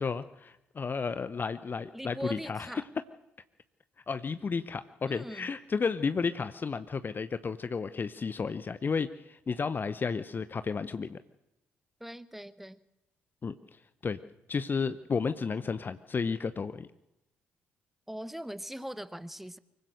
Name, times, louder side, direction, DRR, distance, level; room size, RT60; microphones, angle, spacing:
voice 1, 0.0-2.7 4.1-11.2 13.4-13.5 14.0-14.2 14.5-16.9, left 5 dB, 30° left, 12 dB, 0.8 m, -32 dB
voice 2, 1.9-2.9 5.1-5.5 12.0-12.8 18.1-19.6, equal, 5° right, 15 dB, 1.0 m, -41 dB
24.5 x 16.0 x 6.7 m, 0.90 s
figure-of-eight pair, 45°, 6 cm